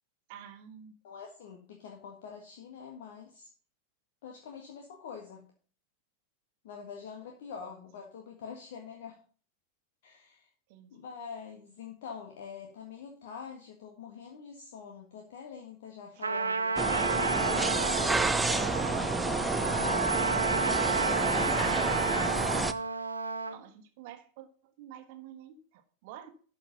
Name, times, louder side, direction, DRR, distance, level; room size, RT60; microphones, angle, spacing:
voice 1, 0.3-0.9 10.7-10.9 23.3-24.5 24.8-26.3, right 10 dB, 50° right, 9 dB, 1.3 m, -49 dB
voice 2, 1.0-3.5 4.2-5.4 6.6-9.2 10.0-10.5 10.9-17.8 18.1-22.0, left 6 dB, 55° left, 1 dB, 1.7 m, -45 dB
Trumpet, 16.2-23.6, right 4 dB, 75° right, 0.8 m, -31 dB
sound 1, 16.8-22.7, right 3 dB, 10° right, 0.6 m, -29 dB
12.5 x 5.1 x 5.5 m, 0.42 s
figure-of-eight pair, 90°, 0 cm